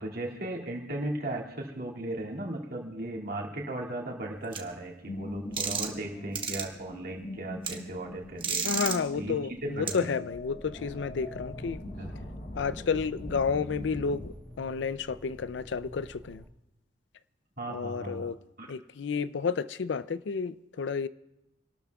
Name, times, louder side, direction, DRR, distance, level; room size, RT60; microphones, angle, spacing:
voice 1, 0.0-8.7 9.2-10.2 11.8-12.1 17.6-18.3 18.6-18.7, right 1 dB, 55° right, 2.4 m, -36 dB
sound 1, 4.5-4.6 5.6-6.0 6.4-6.6 7.6-7.7 8.4-9.0 9.9-10.0, right 6 dB, 30° right, 1.2 m, -30 dB
sound 2, 5.0-14.3, left 1 dB, 45° left, 1.0 m, -42 dB
voice 2, 8.6-11.8 12.5-16.4 17.7-18.4 18.7-21.1, left 5 dB, 75° left, 0.4 m, -31 dB
sound 3, 10.7-16.5, equal, ahead, 1.2 m, -50 dB
28.5 x 12.5 x 2.3 m
head